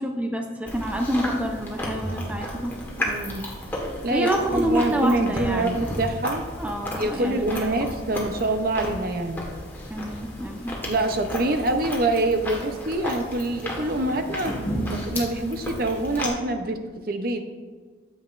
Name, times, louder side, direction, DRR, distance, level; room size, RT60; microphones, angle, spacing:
voice 1, 0.0-2.8 4.1-5.8 6.6-7.7 9.9-10.8, right 1 dB, 5° right, 2 dB, 0.6 m, -27 dB
Chewing mastication, 0.7-16.3, left 1 dB, 10° left, 1.3 m, -33 dB
voice 2, 3.0-3.4 4.0-6.4 7.0-9.4 10.8-14.6 14.9-17.5, right 2 dB, 50° right, 7 dB, 0.6 m, -25 dB
9.1 x 7.7 x 2.4 m, 1.5 s
head